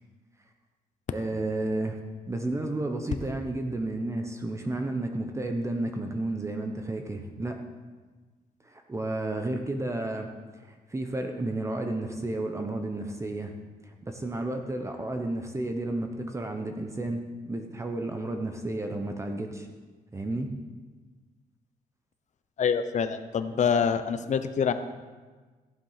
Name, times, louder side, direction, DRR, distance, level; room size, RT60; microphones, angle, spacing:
voice 1, 1.1-2.0 2.3-7.6 8.6-10.3 10.6-13.5 13.9-19.7 20.1-20.5, right 2 dB, 20° right, 4 dB, 1.0 m, -32 dB
voice 2, 22.6-24.7, left 7 dB, 50° left, 10 dB, 0.8 m, -26 dB
14.5 x 7.2 x 5.8 m, 1.4 s
cardioid pair, 115°, 15 cm